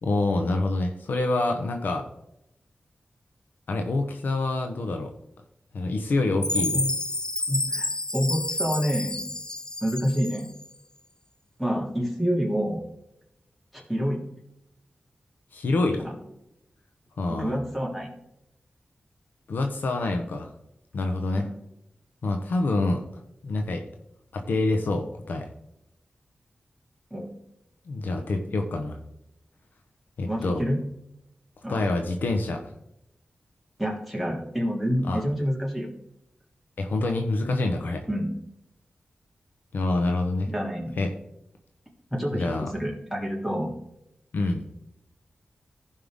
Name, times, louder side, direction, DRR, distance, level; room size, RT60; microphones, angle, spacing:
voice 1, 0.0-2.0 3.7-5.1 5.7-6.8 15.5-16.0 17.2-17.6 19.5-20.5 20.9-21.4 22.2-23.0 23.4-23.8 24.3-25.5 27.9-29.0 30.2-30.6 31.7-32.6 35.1-35.2 36.8-38.0 39.7-40.5 41.0-41.1 42.3-42.7 44.3-44.7, left 2 dB, 85° left, 4 dB, 1.1 m, -26 dB
Chime, 6.4-10.7, left 2 dB, 25° left, 0.5 m, -30 dB
voice 2, 7.5-9.2 9.8-10.5 11.6-12.8 13.7-14.2 16.0-16.1 17.3-18.1 21.4-21.5 27.1-27.3 30.2-30.8 31.6-31.8 33.8-35.9 38.1-38.3 40.5-40.9 42.1-43.7, equal, ahead, -1 dB, 3.2 m, -28 dB
15.0 x 5.6 x 3.6 m, 0.81 s
wide cardioid pair, 70°, 3 cm